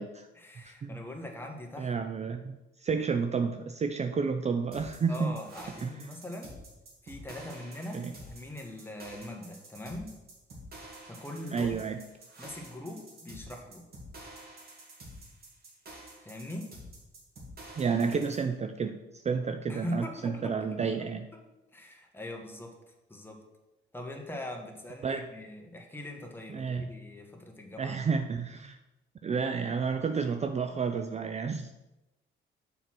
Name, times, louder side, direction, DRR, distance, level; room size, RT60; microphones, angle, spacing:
voice 1, 0.3-1.9 5.1-6.5 7.0-10.1 11.0-11.8 12.4-13.8 16.2-16.7 19.7-20.8 21.3-21.4 21.7-23.4 23.9-28.0 29.6-29.7, left 1 dB, 10° left, 2 dB, 1.4 m, -41 dB
voice 2, 1.8-5.3 5.8-6.1 7.9-8.1 11.5-12.0 17.8-21.3 25.0-25.3 26.5-26.9 27.8-28.8 29.2-31.7, right 5 dB, 35° right, 7 dB, 0.5 m, -31 dB
sound 1, 4.7-18.4, right 1 dB, 50° right, 2.3 m, -49 dB
6.7 x 4.6 x 6.0 m, 0.99 s
cardioid pair, 90°, 20 cm